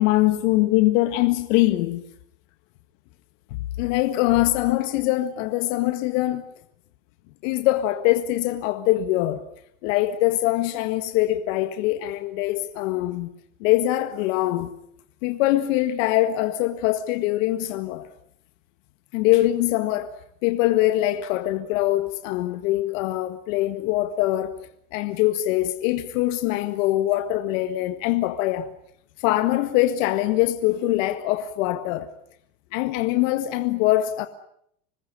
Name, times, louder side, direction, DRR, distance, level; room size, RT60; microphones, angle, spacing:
voice 1, 0.0-2.0 3.8-6.5 7.4-9.5 9.8-13.3 13.6-14.7 15.2-18.1 19.1-20.1 20.4-24.6 24.9-28.7 29.2-32.1 32.7-34.3, left 15 dB, 65° left, 1.8 m, -23 dB
26.0 x 20.5 x 10.0 m
supercardioid pair, 135°, 40 cm